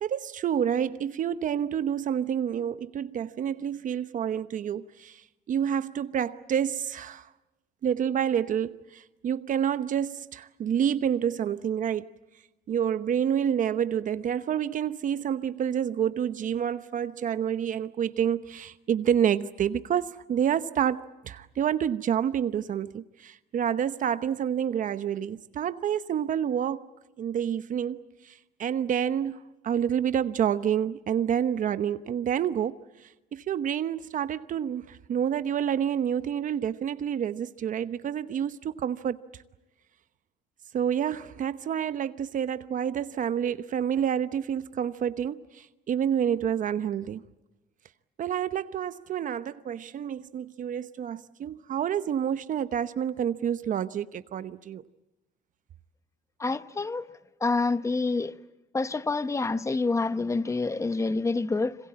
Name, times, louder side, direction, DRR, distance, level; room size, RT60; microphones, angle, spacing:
voice 1, 0.0-7.3 7.8-12.1 12.7-26.9 27.2-29.4 29.6-39.2 40.7-47.2 48.2-54.8, right 9 dB, 50° right, 0.9 m, -28 dB
voice 2, 56.4-57.1 57.4-58.3 58.7-61.8, left 3 dB, 15° left, 1.0 m, -27 dB
26.5 x 26.0 x 8.7 m
cardioid pair, 110°, 17 cm